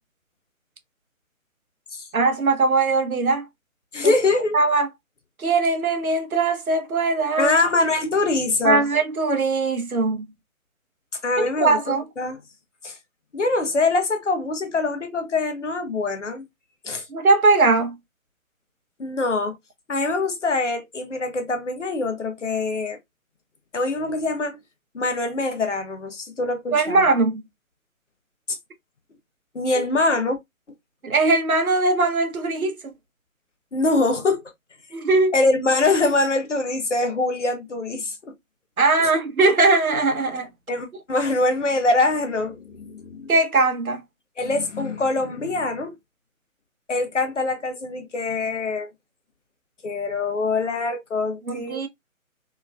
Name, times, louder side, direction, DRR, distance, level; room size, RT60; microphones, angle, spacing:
voice 1, 2.1-3.4 4.0-4.1 4.5-4.9 5.4-7.5 8.6-10.3 11.4-12.0 17.1-18.0 26.7-27.4 29.8-29.9 31.0-32.9 34.9-35.3 38.8-40.5 43.3-44.0 51.5-51.9, right 3 dB, 90° right, 0.7 m, -20 dB
voice 2, 3.9-4.6 7.4-8.8 11.2-12.4 12.8-13.0 13.3-16.4 16.8-17.0 19.0-19.6 19.9-23.0 23.7-24.6 24.9-27.1 28.5-28.6 29.5-30.4 33.7-34.4 35.3-38.3 39.0-39.1 40.7-43.3 44.4-46.0 46.9-48.9 49.8-51.9, left 3 dB, 60° left, 0.8 m, -24 dB
2.9 x 2.2 x 2.3 m
figure-of-eight pair, 145°, 41 cm